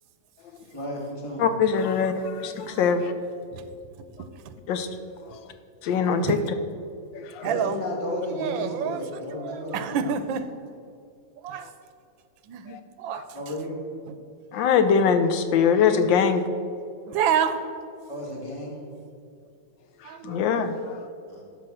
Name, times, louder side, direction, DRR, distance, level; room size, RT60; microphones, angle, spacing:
voice 1, 0.7-1.4 7.4-10.2 13.3-13.8 18.1-18.8 21.3-21.4, left 1 dB, 15° left, -3 dB, 2.0 m, -33 dB
voice 2, 1.4-3.1 4.7-4.9 5.2-5.4 5.8-6.4 7.1-7.5 11.5-11.7 12.7-12.8 13.1-13.2 14.5-16.4 20.0-21.0, left 6 dB, 80° left, 9 dB, 1.5 m, -23 dB
voice 3, 4.2-4.5 6.2-6.4 7.4-7.8 8.4-9.0 9.3-10.5 11.4-11.7 12.5-13.3 14.1-14.2 17.1-17.6 20.0-20.4, right 8 dB, 90° right, 11 dB, 1.4 m, -28 dB
12.5 x 5.2 x 6.3 m, 2.4 s
omnidirectional pair, 2.1 m